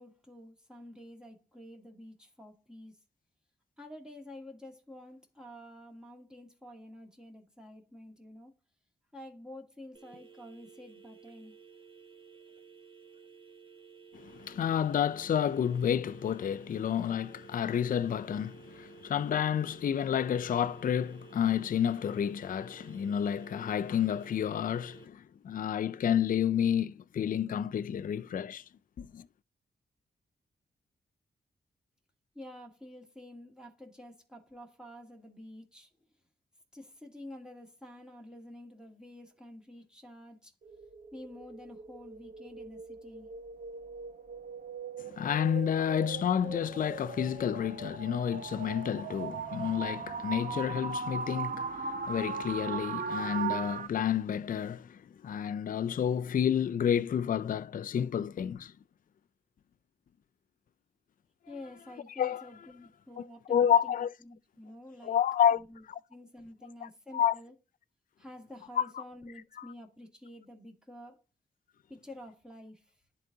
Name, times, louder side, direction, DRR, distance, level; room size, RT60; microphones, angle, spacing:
voice 1, 0.0-3.0 3.8-8.5 9.1-11.5 32.3-35.9 36.7-40.5 41.1-43.3 61.5-63.9 64.2-65.2 65.5-65.8 66.1-67.5 68.2-71.2 71.9-72.9, left 1 dB, 5° right, 2.1 m, -49 dB
sound 1, 9.9-25.1, right 5 dB, 30° right, 1.4 m, -54 dB
voice 2, 14.1-28.6 29.0-29.3 45.0-58.7 62.2-62.4 63.5-64.1 65.0-65.6 65.9-66.0 66.8-67.4 68.8-69.0 69.6-69.7, left 9 dB, 50° left, 0.4 m, -30 dB
sound 2, 40.6-53.9, right 5 dB, 55° right, 0.9 m, -39 dB
10.5 x 3.9 x 2.7 m
cardioid pair, 70°, 18 cm